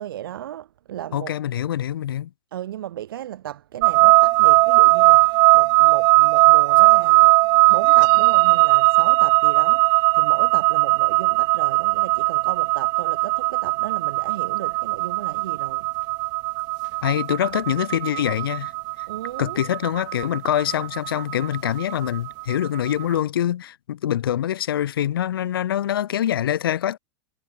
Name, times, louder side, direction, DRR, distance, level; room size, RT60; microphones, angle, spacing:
voice 1, 0.0-1.3 2.5-7.4 7.7-15.9 19.1-19.6, right 12 dB, 75° right, 6.2 m, -35 dB
voice 2, 1.1-2.3 17.0-18.7 19.4-27.0, left 11 dB, 80° left, 2.1 m, -24 dB
sound 1, 3.8-22.9, right 23 dB, 35° right, 0.3 m, -18 dB
hypercardioid pair, 125°, 12 cm